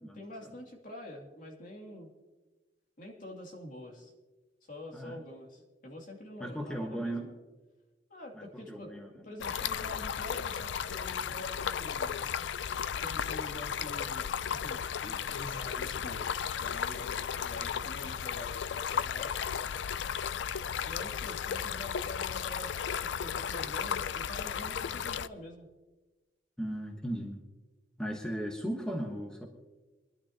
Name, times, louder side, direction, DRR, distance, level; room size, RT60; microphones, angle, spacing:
voice 1, 0.0-2.1 3.0-4.1 4.6-7.3 8.1-8.9 9.2-12.2 13.0-19.3 20.8-25.7, left 1 dB, 50° left, 1 dB, 2.6 m, -46 dB
voice 2, 6.4-7.3 8.3-9.3 26.6-27.4 28.0-29.5, right 1 dB, 5° left, 1 dB, 1.2 m, -37 dB
Stream, 9.4-25.3, left 8 dB, 70° left, 0.4 m, -34 dB
23.5 x 11.5 x 2.9 m, 1.2 s
head